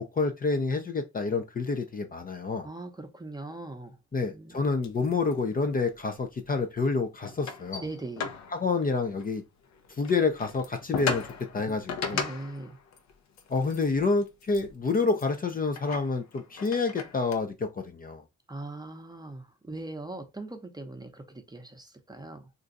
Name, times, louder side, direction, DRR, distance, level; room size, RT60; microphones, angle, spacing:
voice 1, 0.1-2.7 4.1-7.8 8.5-9.4 9.9-11.3 11.5-12.2 13.5-18.2, left 4 dB, 30° left, 0.5 m, -28 dB
voice 2, 2.6-4.0 4.3-4.6 7.8-8.3 12.1-12.8 18.5-22.5, right 2 dB, 15° right, 0.7 m, -40 dB
sound 1, 4.8-5.7 6.0-6.6 6.8-6.9 7.3-9.4 9.7-17.3, left 6 dB, 65° left, 0.7 m, -37 dB
2.6 x 2.2 x 3.9 m
cardioid pair, 90°, 30 cm